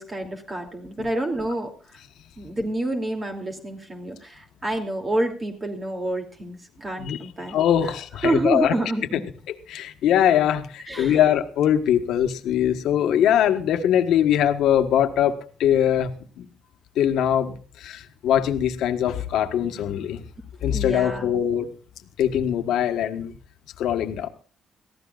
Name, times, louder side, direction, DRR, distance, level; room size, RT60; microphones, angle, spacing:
voice 1, 0.0-1.7 2.4-7.6 7.8-7.9 8.2-9.2 10.9-11.2 20.7-21.4, right 2 dB, 30° right, 2 dB, 3.0 m, -28 dB
voice 2, 7.5-8.7 9.5-16.1 16.4-16.5 17.0-20.2 20.6-21.7 22.2-23.3 23.8-24.3, left 10 dB, 85° left, 7 dB, 1.4 m, -22 dB
22.5 x 15.0 x 2.5 m, 0.38 s
cardioid pair, 90°, 0 cm